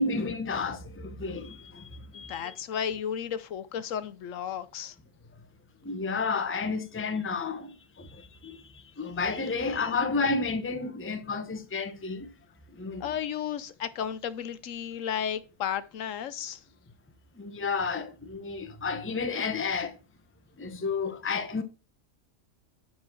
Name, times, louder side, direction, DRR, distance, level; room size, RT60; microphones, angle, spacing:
voice 1, 0.0-2.5 5.8-12.3 12.7-13.0 17.3-20.0 20.6-21.6, left 4 dB, 10° left, 0.7 m, -31 dB
voice 2, 2.1-5.0 9.9-10.0 13.0-16.6, left 8 dB, 75° left, 1.1 m, -33 dB
9.6 x 4.4 x 6.2 m
omnidirectional pair, 1.4 m